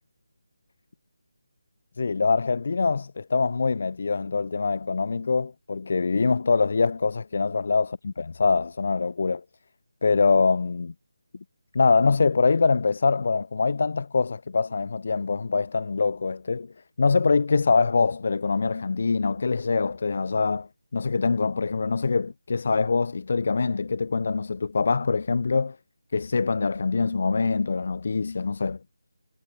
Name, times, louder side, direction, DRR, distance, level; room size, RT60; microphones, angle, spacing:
voice 1, 2.0-9.4 10.0-10.9 11.7-25.8 26.1-28.8, left 4 dB, 55° left, 0.3 m, -24 dB
figure-of-eight pair, 160°, 0 cm